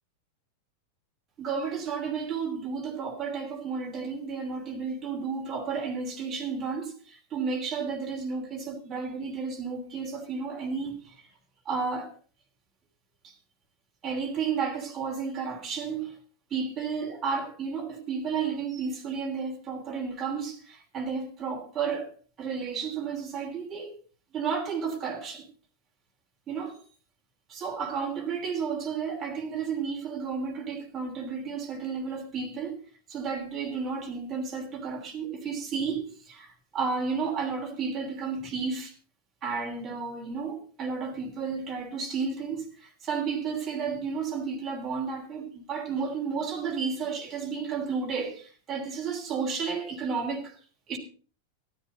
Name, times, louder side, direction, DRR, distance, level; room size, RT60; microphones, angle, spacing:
voice 1, 1.4-11.1 11.6-12.1 13.2-13.3 14.0-16.1 16.5-22.1 22.4-24.0 24.3-25.4 26.5-26.8 27.5-32.8 33.1-38.9 39.4-50.5 50.9-51.0, right 5 dB, 25° right, 3.0 m, -32 dB
13.0 x 12.0 x 4.0 m
figure-of-eight pair, 90°, 0 cm